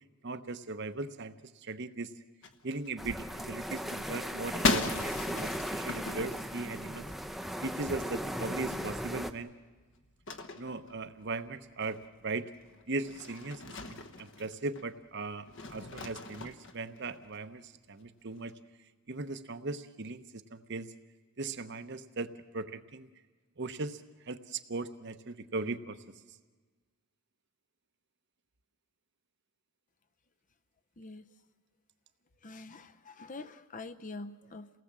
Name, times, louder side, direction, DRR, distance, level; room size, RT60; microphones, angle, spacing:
voice 1, 0.2-1.4 1.6-2.1 2.6-7.1 7.6-9.5 10.6-12.5 12.9-18.5 19.1-20.2 20.5-20.9 21.4-23.1 23.6-26.0, right 3 dB, 50° right, 10 dB, 0.9 m, -38 dB
sound 1, 2.4-3.5 3.7-7.3 7.8-8.0 8.3-8.4 8.6-14.9 15.4-17.4, left 3 dB, 55° left, 1.2 m, -38 dB
sound 2, 3.0-9.3, equal, ahead, 0.6 m, -37 dB
voice 2, 31.0-31.3 32.4-34.7, left 3 dB, 35° left, 11 dB, 0.7 m, -45 dB
28.5 x 18.5 x 7.4 m, 1.4 s
head